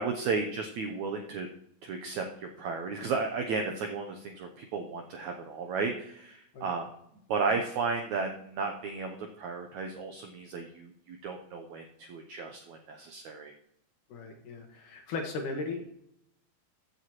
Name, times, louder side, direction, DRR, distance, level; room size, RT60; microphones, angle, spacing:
voice 1, 0.0-1.5 1.8-6.9 7.3-13.5, right 4 dB, 80° right, 4 dB, 1.7 m, -34 dB
voice 2, 14.1-15.9, left 3 dB, 65° left, 3 dB, 2.6 m, -37 dB
14.5 x 8.0 x 3.0 m, 0.74 s
omnidirectional pair, 4.3 m